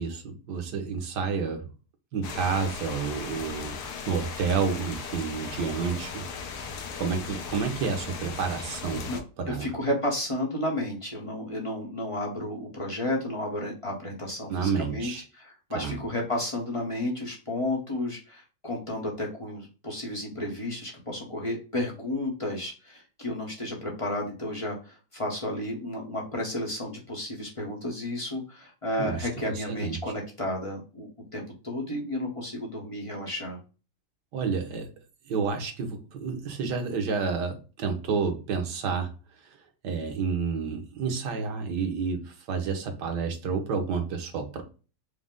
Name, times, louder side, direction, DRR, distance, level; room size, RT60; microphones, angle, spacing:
voice 1, 0.0-1.6 2.1-6.2 6.6-9.1 9.4-9.7 14.5-15.2 15.7-16.0 29.0-29.3 29.5-30.0 34.3-34.9 35.3-39.1 39.4-39.6 39.8-44.6, right 5 dB, 85° right, 1.6 m, -30 dB
sound 1, 2.2-9.2, left 5 dB, 75° left, 1.3 m, -37 dB
voice 2, 9.5-33.6, left 1 dB, 25° left, 0.9 m, -32 dB
4.9 x 2.1 x 3.6 m
omnidirectional pair, 1.8 m